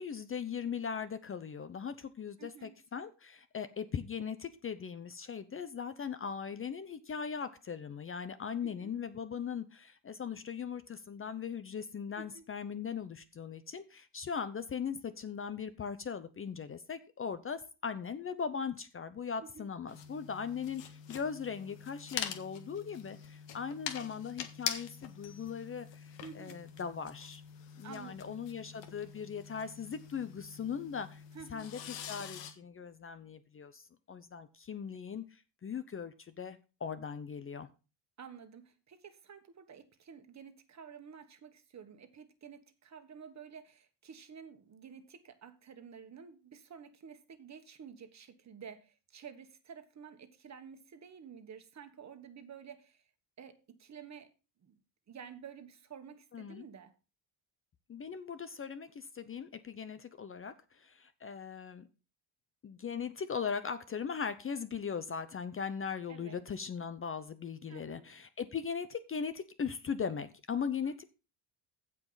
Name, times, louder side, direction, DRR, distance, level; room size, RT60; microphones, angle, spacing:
voice 1, 0.0-27.4 27.8-31.2 31.5-37.7 56.3-56.6 57.9-61.9 62.6-71.0, left 6 dB, 30° left, 0.7 m, -39 dB
voice 2, 2.4-2.8 8.6-8.9 12.1-12.4 19.4-19.7 26.2-26.6 27.8-28.3 31.3-31.7 38.2-53.0 53.4-54.3 54.6-54.8 55.1-56.9 66.1-66.4 67.7-68.0 70.8-71.0, right 7 dB, 35° right, 1.5 m, -51 dB
sound 1, 19.9-32.5, left 9 dB, 70° left, 1.6 m, -44 dB
15.5 x 5.1 x 4.0 m
cardioid pair, 110°, 45 cm